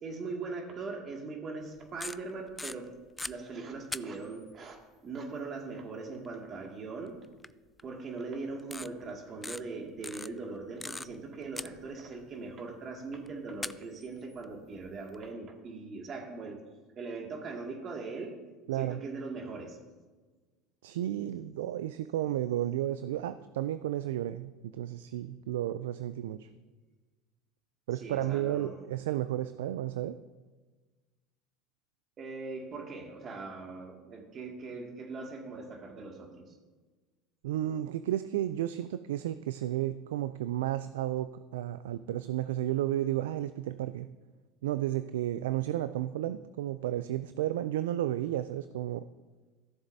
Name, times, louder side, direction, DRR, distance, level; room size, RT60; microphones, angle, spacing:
voice 1, 0.0-2.9 3.2-7.2 7.8-16.6 17.0-18.3 18.7-19.8 28.0-28.9 32.2-36.5, right 3 dB, 40° right, 1 dB, 2.1 m, -40 dB
sound 1, 1.8-3.3 3.9-4.5 6.2-6.3 7.4-7.5 7.8-7.9 8.6-8.9 9.4-9.6 10.0-11.3 11.6-12.2 13.3-13.4 13.6-15.3, left 2 dB, 10° left, 0.3 m, -40 dB
voice 2, 18.7-19.0 20.8-26.5 27.9-30.2 37.4-44.1 44.6-49.0, right 13 dB, 80° right, 12 dB, 0.3 m, -32 dB
15.5 x 7.2 x 2.7 m, 1.3 s
hypercardioid pair, 85°, 0 cm